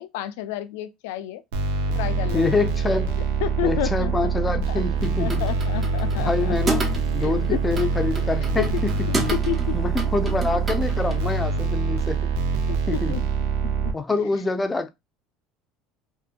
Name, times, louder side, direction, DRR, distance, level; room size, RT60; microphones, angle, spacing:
voice 1, 0.0-1.4 1.9-2.6 3.4-4.8 5.2-6.6 7.2-7.6 9.1-9.8 12.7-13.2 13.6-13.9, left 13 dB, 85° left, 0.3 m, -31 dB
sound 1, 1.5-13.9, right 4 dB, 90° right, 0.5 m, -24 dB
voice 2, 2.3-3.2 3.6-5.4 6.2-8.9 9.7-12.3 12.9-13.1 13.9-14.9, left 3 dB, 15° left, 0.4 m, -26 dB
sound 2, 5.0-11.2, right 2 dB, 25° right, 0.6 m, -32 dB
2.6 x 2.1 x 2.4 m
supercardioid pair, 115°, 0 cm